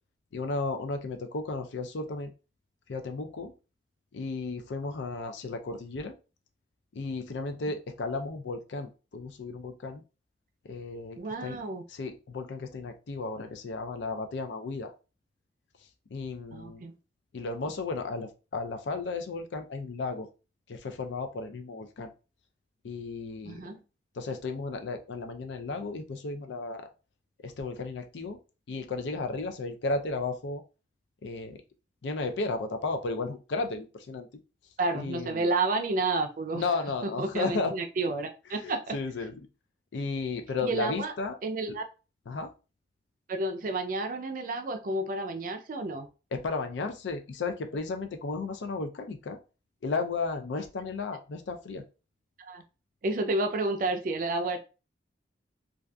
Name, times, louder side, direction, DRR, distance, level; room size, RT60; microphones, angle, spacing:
voice 1, 0.3-2.3 2.9-3.5 4.1-6.2 7.0-10.0 10.6-11.6 11.9-14.9 16.1-16.9 17.3-20.3 20.7-22.1 22.8-23.6 24.1-26.9 27.4-28.4 28.7-30.6 31.2-31.6 32.0-34.3 34.9-35.4 36.5-37.7 38.5-39.5 39.9-41.4 42.3-42.5 46.3-49.4 49.8-51.8, left 3 dB, 75° left, 6 dB, 0.4 m, -34 dB
voice 2, 11.2-11.8 16.5-16.9 23.4-23.8 34.8-36.6 37.0-39.0 40.6-41.1 41.4-41.8 43.3-46.1 52.4-52.6 53.0-54.6, right 2 dB, 45° right, 6 dB, 0.4 m, -30 dB
2.6 x 2.3 x 2.2 m, 0.32 s
head